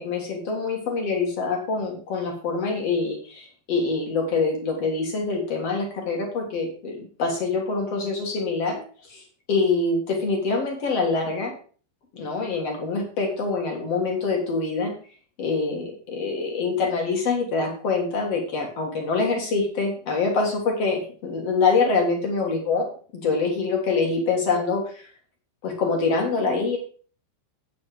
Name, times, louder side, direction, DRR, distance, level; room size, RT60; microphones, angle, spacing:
voice 1, 0.0-11.5 12.1-14.9 15.4-25.1 25.6-26.8, left 4 dB, 55° left, 1 dB, 1.9 m, -25 dB
8.9 x 7.7 x 4.9 m, 0.42 s
omnidirectional pair, 5.2 m